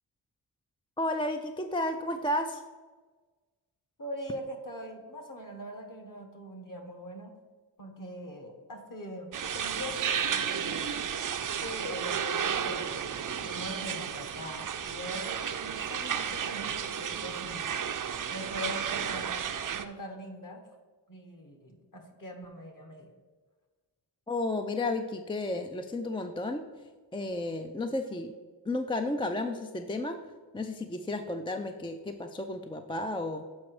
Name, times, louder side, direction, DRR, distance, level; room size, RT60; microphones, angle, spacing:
voice 1, 1.0-2.6 24.3-26.6 27.1-28.3 28.6-30.2 30.5-33.4, left 2 dB, 10° left, 6 dB, 0.4 m, -32 dB
voice 2, 4.0-7.3 7.8-10.0 10.2-10.9 11.6-17.7 18.3-19.3 19.7-20.6 21.1-23.1, equal, 45° left, 5 dB, 1.5 m, -42 dB
sound 1, 9.3-19.8, right 7 dB, 45° right, 0.6 m, -33 dB
7.3 x 5.1 x 4.8 m, 1.3 s
cardioid pair, 65°, 47 cm